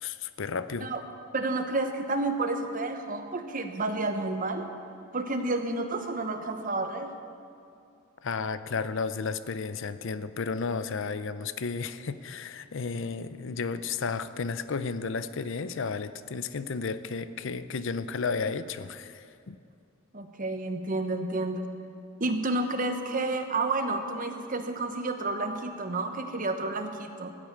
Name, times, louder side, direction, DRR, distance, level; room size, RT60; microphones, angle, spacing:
voice 1, 0.0-0.9 8.2-19.6, left 5 dB, 65° left, 13 dB, 0.6 m, -33 dB
voice 2, 1.3-4.7 5.1-7.1 20.1-21.7 22.2-27.3, right 2 dB, 40° right, 6 dB, 1.1 m, -30 dB
14.0 x 8.6 x 9.3 m, 2.4 s
head